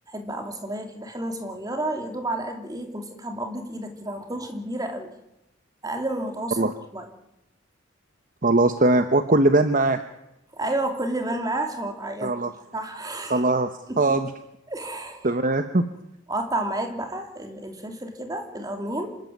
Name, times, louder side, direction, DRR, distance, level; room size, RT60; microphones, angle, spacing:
voice 1, 0.1-5.1 5.8-6.7 6.9-7.1 10.5-12.3 12.7-13.4 13.9-14.0 14.7-15.3 16.3-19.2, right 1 dB, 20° right, 4 dB, 2.9 m, -31 dB
voice 2, 8.4-10.0 12.2-12.5 13.3-14.3 15.2-15.8, right 2 dB, 40° right, 9 dB, 0.9 m, -20 dB
26.0 x 13.0 x 9.4 m, 0.89 s
head